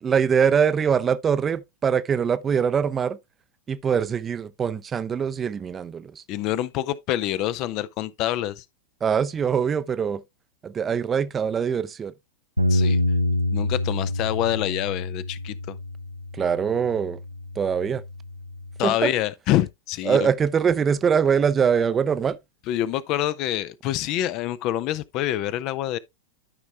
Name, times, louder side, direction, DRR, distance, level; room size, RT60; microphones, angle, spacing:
voice 1, 0.0-3.2 3.7-6.2 9.0-10.2 10.6-12.1 16.3-17.2 17.6-18.0 18.8-19.1 20.0-22.4, right 7 dB, 20° right, 0.5 m, -23 dB
voice 2, 6.3-8.6 12.7-13.0 13.5-15.8 18.8-20.3 22.7-26.0, left 13 dB, 40° left, 0.5 m, -26 dB
Bass guitar, 12.6-18.8, left 1 dB, 85° right, 0.6 m, -27 dB
12.5 x 5.2 x 2.3 m
figure-of-eight pair, 90°, 0 cm